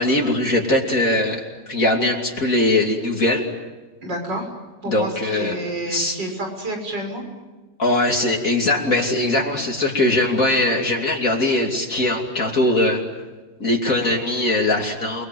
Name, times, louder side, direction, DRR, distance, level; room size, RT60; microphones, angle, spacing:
voice 1, 0.0-3.5 4.8-5.6 5.9-6.2 7.8-13.0 13.6-15.3, left 2 dB, 50° left, 1 dB, 3.3 m, -21 dB
voice 2, 4.0-4.5 4.8-7.2, right 1 dB, 80° right, 3 dB, 6.8 m, -29 dB
30.0 x 21.5 x 9.3 m, 1.2 s
omnidirectional pair, 1.9 m